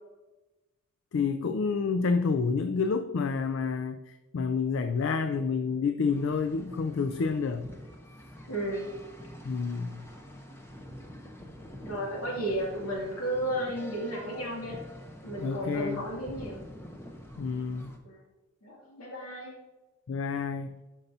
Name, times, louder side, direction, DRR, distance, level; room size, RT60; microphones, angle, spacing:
voice 1, 1.1-7.7 9.4-10.0 15.4-16.0 17.4-17.9 20.1-20.7, left 5 dB, 55° left, 8 dB, 0.3 m, -29 dB
sound 1, 6.1-18.0, equal, 10° left, 0.7 m, -46 dB
voice 2, 8.5-8.9 11.8-14.8 15.2-16.6 18.0-18.2 18.6-19.5, right 1 dB, 75° left, -3 dB, 2.5 m, -33 dB
11.0 x 5.5 x 2.7 m, 1.1 s
head